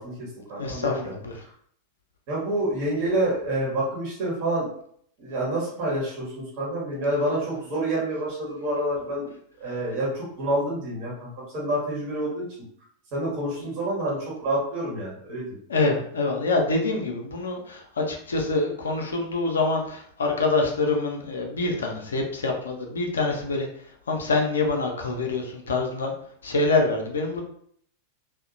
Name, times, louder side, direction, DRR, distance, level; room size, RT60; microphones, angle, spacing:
voice 1, 0.0-1.1 2.3-4.7 5.2-9.3 9.6-12.4 13.1-15.6, right 1 dB, 45° right, -5 dB, 1.0 m, -28 dB
voice 2, 0.6-1.4 13.6-13.7 15.7-23.7 24.1-26.1 26.4-27.4, left 3 dB, 70° left, 2 dB, 0.5 m, -25 dB
2.8 x 2.1 x 2.5 m, 0.64 s
figure-of-eight pair, 90°, 0 cm